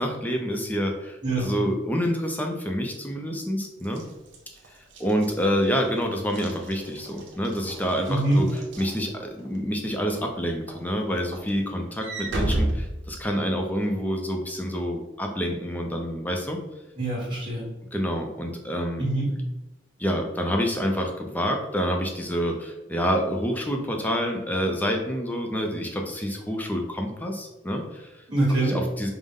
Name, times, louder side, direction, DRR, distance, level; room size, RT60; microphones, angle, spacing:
voice 1, 0.0-4.0 5.0-16.6 17.9-19.1 20.0-28.2 28.6-29.1, equal, 10° left, 2 dB, 0.4 m, -27 dB
Walk footsteps / Slam, 3.8-9.6 10.1-10.3 10.7-13.7, right 1 dB, 75° right, 0.8 m, -33 dB
voice 2, 8.1-8.4 17.0-17.7 19.0-19.3 28.3-28.8, right 1 dB, 25° right, -6 dB, 1.4 m, -24 dB
5.2 x 2.1 x 3.6 m, 0.99 s
head